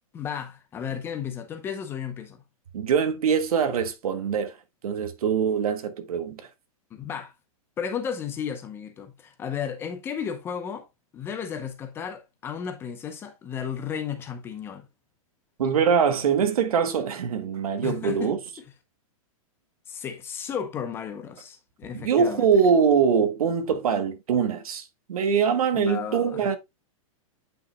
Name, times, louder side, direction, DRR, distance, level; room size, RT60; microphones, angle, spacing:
voice 1, 0.1-2.4 6.9-7.3 7.8-10.9 11.1-14.8 17.8-18.3 19.9-22.5 25.7-26.5, left 7 dB, 10° left, 0.7 m, -34 dB
voice 2, 2.7-4.6 4.8-6.5 15.6-18.4 21.9-26.6, right 6 dB, 80° right, 1.6 m, -23 dB
9.4 x 5.8 x 2.2 m
supercardioid pair, 170°, 18 cm